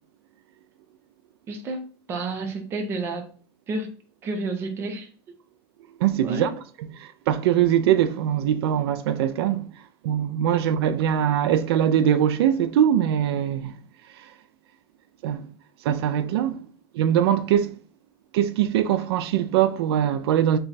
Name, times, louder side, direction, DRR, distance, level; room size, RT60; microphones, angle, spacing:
voice 1, 1.5-3.3 3.7-3.9 4.2-5.3 6.2-6.5, right 3 dB, 20° right, 0.5 m, -31 dB
voice 2, 6.0-6.5 6.8-9.7 10.0-13.7 14.1-14.3 15.2-15.5 15.8-16.7 16.9-17.8 18.3-20.6, right 10 dB, 75° right, 0.4 m, -22 dB
3.2 x 2.3 x 4.0 m
supercardioid pair, 170°, 14 cm